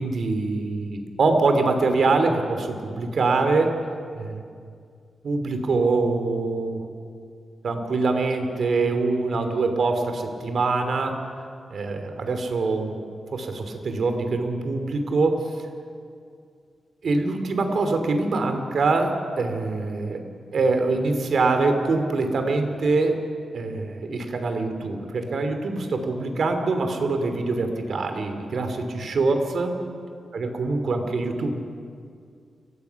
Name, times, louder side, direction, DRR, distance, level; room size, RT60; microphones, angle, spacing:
voice 1, 0.0-3.7 4.1-4.4 5.2-6.9 7.6-11.2 11.7-13.0 13.3-15.4 17.0-20.2 20.5-23.2 23.5-29.7 30.3-31.6, right 3 dB, 65° right, 6 dB, 2.7 m, -24 dB
29.0 x 16.0 x 5.9 m, 2.2 s
cardioid pair, 80°, 0 cm